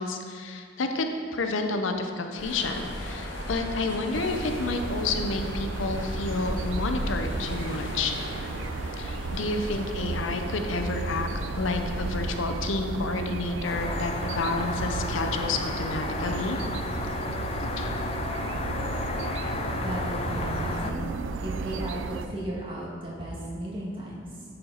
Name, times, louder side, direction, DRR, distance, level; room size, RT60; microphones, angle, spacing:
voice 1, 0.0-8.1 9.0-16.6 17.8-17.9, left 3 dB, 90° left, 5 dB, 0.6 m, -30 dB
sound 1, 2.4-12.4, equal, 70° left, 1.3 m, -35 dB
sound 2, 4.1-22.3, right 4 dB, 80° right, 0.4 m, -34 dB
sound 3, 13.6-20.9, left 3 dB, 30° left, 0.4 m, -33 dB
voice 2, 19.8-21.1 21.4-24.4, right 1 dB, 30° right, -5 dB, 1.6 m, -35 dB
10.5 x 4.4 x 3.9 m, 2.2 s
head